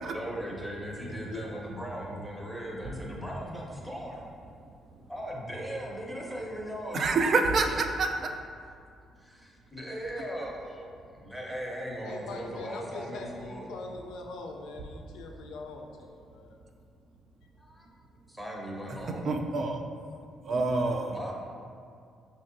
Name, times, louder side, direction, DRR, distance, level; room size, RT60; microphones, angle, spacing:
voice 1, 0.0-4.2 5.1-7.9 9.7-13.8 17.6-17.9 18.3-19.4 21.1-21.3, equal, 5° right, -3 dB, 0.7 m, -38 dB
voice 2, 6.9-7.7 8.0-8.3 19.0-19.8 20.5-21.3, right 3 dB, 55° right, 4 dB, 0.3 m, -27 dB
voice 3, 12.0-16.5, left 3 dB, 90° left, 2 dB, 0.4 m, -42 dB
4.5 x 2.7 x 2.5 m, 2.4 s
cardioid pair, 90°, 0 cm